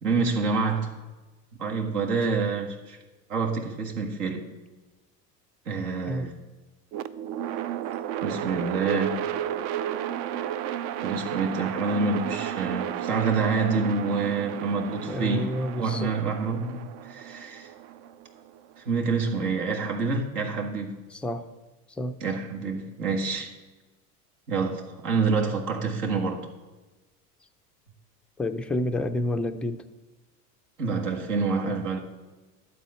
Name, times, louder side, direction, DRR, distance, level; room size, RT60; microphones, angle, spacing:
voice 1, 0.0-1.0 1.6-3.0 3.3-4.5 5.7-6.3 8.2-9.3 11.0-15.5 15.8-17.7 18.8-21.0 22.2-23.5 24.5-26.5 30.8-32.0, right 4 dB, 80° right, 1.8 m, -27 dB
sound 1, 6.9-19.0, right 11 dB, 55° right, 0.6 m, -33 dB
voice 2, 15.1-16.1 21.1-21.5 21.9-22.2 28.4-29.8, left 1 dB, 5° left, 0.3 m, -29 dB
12.0 x 4.2 x 7.9 m
hypercardioid pair, 80°, 47 cm